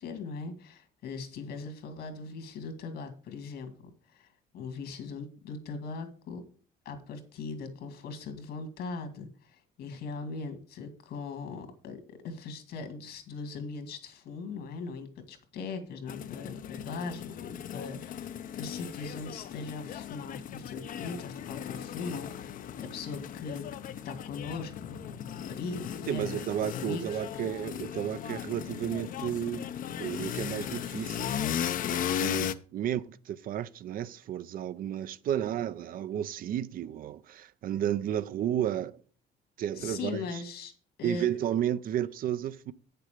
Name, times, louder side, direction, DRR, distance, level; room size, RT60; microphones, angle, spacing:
voice 1, 0.0-3.7 4.1-4.3 4.5-6.4 6.9-23.7 24.0-25.2 25.4-26.4 26.7-27.2 39.7-40.7 41.0-41.3, left 4 dB, 70° left, 2.1 m, -40 dB
sound 1, 16.1-32.5, left 9 dB, 55° left, 0.6 m, -37 dB
voice 2, 26.1-29.7 30.0-31.3 31.9-39.0 39.6-40.4 41.0-42.7, right 10 dB, 55° right, 0.5 m, -32 dB
8.5 x 6.8 x 5.0 m
cardioid pair, 110°, 17 cm